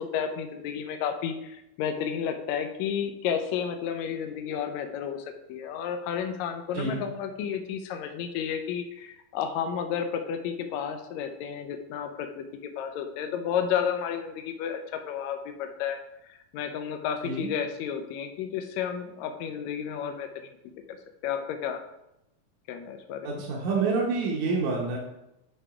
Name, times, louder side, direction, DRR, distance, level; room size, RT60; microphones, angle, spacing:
voice 1, 0.0-12.5 12.8-16.0 16.3-20.6 21.2-21.8 22.7-23.4, left 8 dB, 75° left, 6 dB, 1.8 m, -32 dB
voice 2, 23.2-25.0, right 4 dB, 70° right, -3 dB, 2.2 m, -27 dB
8.8 x 3.4 x 4.9 m, 0.87 s
omnidirectional pair, 3.7 m